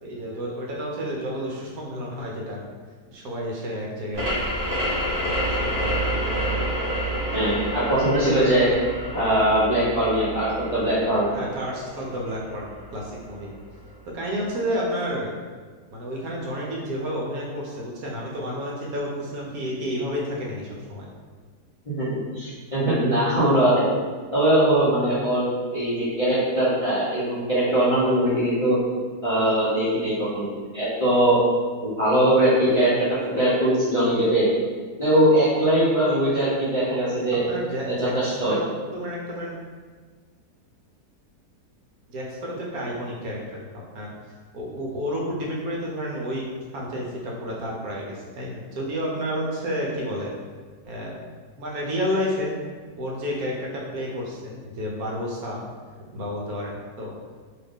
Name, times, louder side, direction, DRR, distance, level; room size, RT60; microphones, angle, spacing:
voice 1, 0.0-2.6 3.1-4.4 5.5-6.7 11.3-13.5 14.1-15.3 15.9-21.1 37.3-39.5 42.1-44.1 44.5-46.5 46.7-50.3 50.8-51.2 51.6-52.6 53.0-55.6 56.1-57.2, equal, 70° right, -3 dB, 1.1 m, -31 dB
sound 1, 4.1-13.5, right 1 dB, 45° right, 0.7 m, -29 dB
voice 2, 7.3-8.7 9.1-11.3 22.0-23.9 24.3-28.8 29.2-31.4 31.8-34.5 35.0-37.4 37.9-38.5, right 1 dB, 50° left, -11 dB, 0.4 m, -21 dB
2.7 x 2.4 x 3.5 m, 1.5 s
omnidirectional pair, 1.7 m